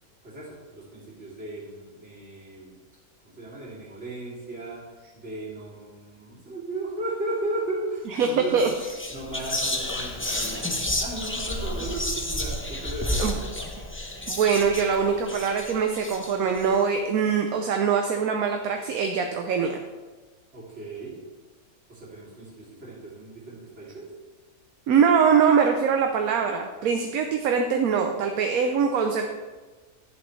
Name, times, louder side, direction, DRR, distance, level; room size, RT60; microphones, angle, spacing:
voice 1, 0.2-2.7 3.2-4.8 5.1-8.7 9.1-13.3 20.5-21.2 21.9-24.1, right 2 dB, 50° right, -6 dB, 3.2 m, -35 dB
Whispering, 8.1-8.3 8.6-16.7, left 1 dB, 15° left, 0.5 m, -31 dB
voice 2, 8.2-8.7 13.2-13.4 14.3-19.7 24.9-29.3, right 6 dB, 75° right, 4 dB, 1.1 m, -23 dB
10.5 x 8.5 x 3.2 m, 1.3 s
omnidirectional pair, 1.6 m